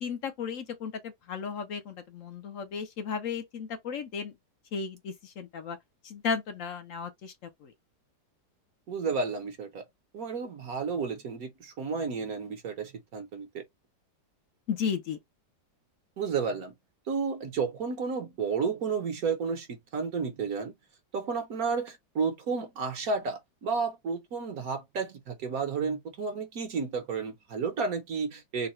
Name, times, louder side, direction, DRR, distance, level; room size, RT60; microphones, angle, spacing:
voice 1, 0.0-4.3 4.7-5.8 6.0-7.3 7.6-7.7 14.7-15.2, left 6 dB, 65° left, 0.9 m, -34 dB
voice 2, 8.9-9.8 10.1-13.6 16.2-16.7 17.1-20.7 21.1-28.7, right 5 dB, 65° right, 1.3 m, -32 dB
3.9 x 2.2 x 4.2 m
omnidirectional pair, 1.7 m